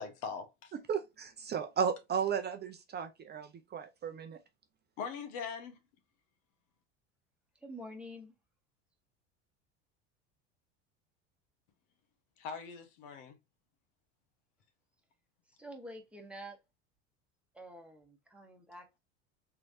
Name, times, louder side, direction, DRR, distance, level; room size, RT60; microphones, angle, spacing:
voice 1, 0.0-0.7 5.0-5.8 12.4-13.4, left 6 dB, 65° left, 1.3 m, -41 dB
voice 2, 0.9-4.4, right 7 dB, 30° right, 0.6 m, -35 dB
voice 3, 7.6-8.3 15.5-16.6 17.5-19.0, equal, 5° right, 1.4 m, -48 dB
3.7 x 3.1 x 2.7 m
hypercardioid pair, 90°, 36 cm